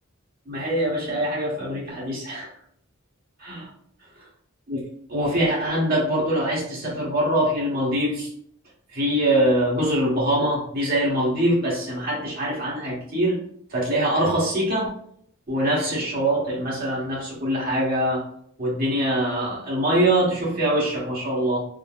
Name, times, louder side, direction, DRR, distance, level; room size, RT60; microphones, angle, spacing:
voice 1, 0.5-2.5 3.4-3.7 4.7-4.8 5.1-8.3 8.9-13.4 13.7-14.9 15.5-18.2 18.6-21.6, right 1 dB, 45° right, -5 dB, 1.0 m, -23 dB
3.7 x 2.0 x 2.3 m, 0.66 s
head